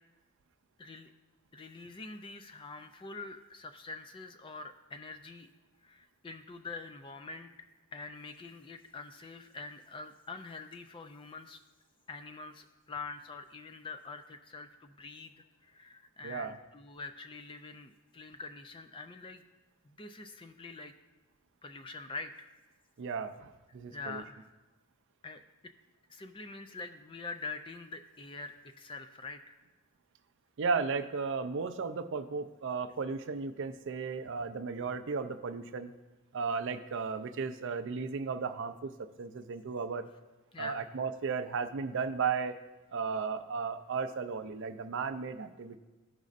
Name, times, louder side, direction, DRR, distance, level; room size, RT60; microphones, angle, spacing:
voice 1, 0.8-1.1 1.5-5.5 5.8-7.5 7.9-11.6 12.1-15.3 15.6-19.4 19.8-20.9 21.6-22.5 23.9-24.4 25.2-25.4 26.1-29.6 40.5-40.9, left 3 dB, 20° left, 8 dB, 0.3 m, -45 dB
voice 2, 16.2-16.6 23.0-24.2 30.6-35.9 36.3-40.1 40.6-42.6 42.9-45.8, right 5 dB, 55° right, 10 dB, 0.4 m, -35 dB
14.0 x 5.2 x 2.5 m, 1.2 s
head